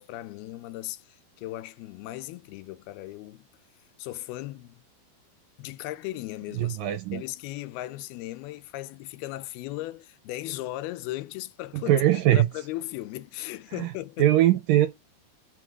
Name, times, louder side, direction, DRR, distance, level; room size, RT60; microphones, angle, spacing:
voice 1, 0.0-3.4 4.0-4.8 5.6-12.0 12.3-14.3, left 16 dB, 85° left, 2.4 m, -37 dB
voice 2, 6.6-7.2 11.9-12.5 13.8-13.9 14.2-14.9, right 13 dB, 80° right, 2.0 m, -21 dB
6.2 x 4.7 x 6.0 m
omnidirectional pair, 4.5 m